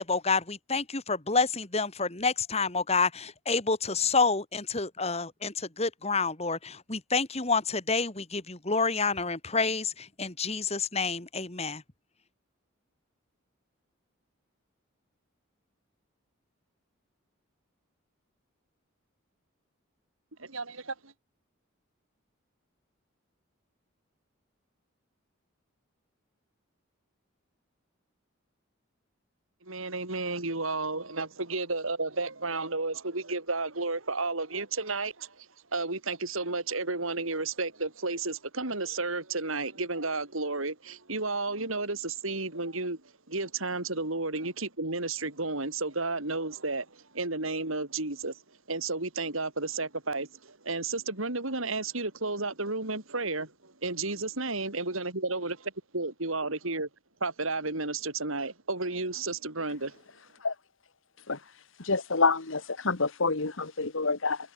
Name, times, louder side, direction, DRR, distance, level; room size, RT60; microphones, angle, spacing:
voice 1, 0.0-11.8, left 4 dB, 30° left, 2.1 m, -28 dB
voice 2, 20.4-20.9 29.7-35.3 35.7-43.0 43.3-46.8 47.1-48.3 48.7-50.3 50.6-53.5 53.8-56.9 57.2-59.9, right 3 dB, 80° right, 4.8 m, -32 dB
voice 3, 61.9-64.4, left 4 dB, 70° left, 1.6 m, -27 dB
head